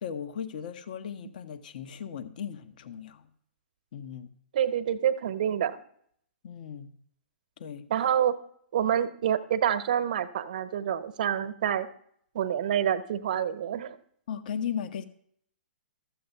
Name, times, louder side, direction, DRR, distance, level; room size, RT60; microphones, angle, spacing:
voice 1, 0.0-3.3 3.9-4.3 6.4-6.9 7.6-7.9 14.3-15.0, left 8 dB, 60° left, 10 dB, 1.0 m, -37 dB
voice 2, 4.5-5.8 7.9-8.3 8.7-11.9 12.3-14.0, right 9 dB, 55° right, 11 dB, 1.0 m, -27 dB
13.5 x 7.6 x 5.5 m, 0.65 s
figure-of-eight pair, 110°, 5 cm